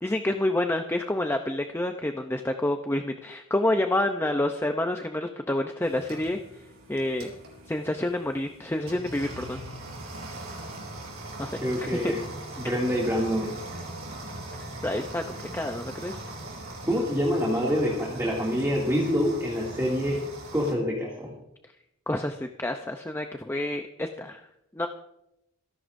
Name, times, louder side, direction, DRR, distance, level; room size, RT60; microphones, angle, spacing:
voice 1, 0.0-6.4 6.9-7.3 7.7-9.6 11.4-12.1 14.8-16.2 22.1-24.4 24.7-24.9, left 1 dB, 10° left, 5 dB, 0.6 m, -28 dB
sound 1, 5.8-20.7, right 1 dB, 80° right, 6.4 m, -40 dB
voice 2, 11.6-12.2 12.6-13.6 16.9-20.2 20.5-21.3, equal, 15° right, -4 dB, 2.4 m, -26 dB
26.5 x 11.5 x 2.6 m, 0.83 s
head